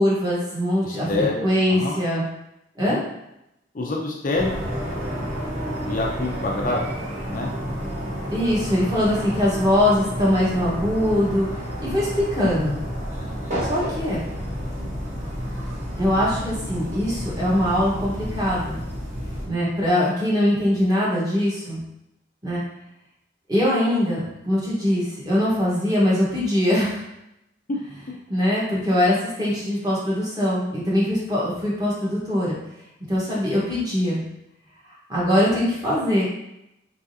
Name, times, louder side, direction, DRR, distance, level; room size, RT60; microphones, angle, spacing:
voice 1, 0.0-2.2 2.8-3.0 8.3-11.5 11.8-12.7 13.7-14.3 16.0-18.8 19.5-21.8 22.4-22.6 23.5-27.0 28.3-32.6 33.1-34.2 35.1-36.3, left 1 dB, 20° right, -7 dB, 1.2 m, -22 dB
voice 2, 0.8-2.0 2.9-3.0 3.7-4.5 5.9-6.8 7.3-7.5 27.7-27.8, left 2 dB, 40° left, -1 dB, 0.5 m, -26 dB
sound 1, 4.3-19.4, equal, 35° right, 1.3 m, -30 dB
4.0 x 3.6 x 2.7 m, 0.85 s
head